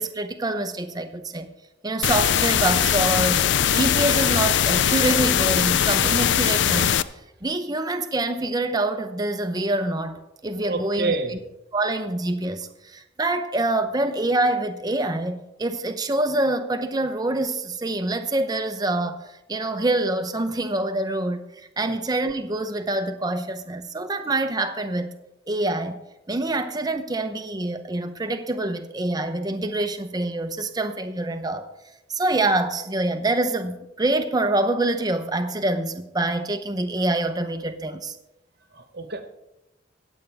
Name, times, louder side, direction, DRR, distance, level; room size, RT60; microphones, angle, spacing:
voice 1, 0.0-1.5 1.8-7.0 7.4-11.4 11.7-21.4 21.8-25.1 25.5-26.0 26.3-31.7 32.1-38.1, right 2 dB, 20° right, 0.8 m, -26 dB
sound 1, 2.0-7.0, left 9 dB, 70° left, 0.4 m, -20 dB
voice 2, 10.6-11.4 21.8-21.9 38.7-39.2, right 3 dB, 55° right, 1.2 m, -28 dB
23.5 x 8.3 x 3.5 m
head